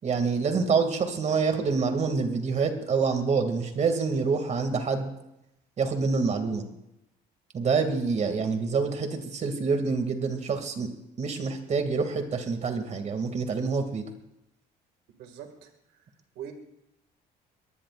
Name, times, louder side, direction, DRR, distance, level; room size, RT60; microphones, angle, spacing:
voice 1, 0.0-5.1 5.8-6.7 7.5-10.9 11.2-14.0, right 4 dB, 45° right, 6 dB, 2.6 m, -26 dB
voice 2, 15.1-16.0 16.4-16.5, right 9 dB, 90° right, 4 dB, 2.3 m, -43 dB
23.5 x 18.5 x 2.6 m, 0.87 s
cardioid pair, 110°, 17 cm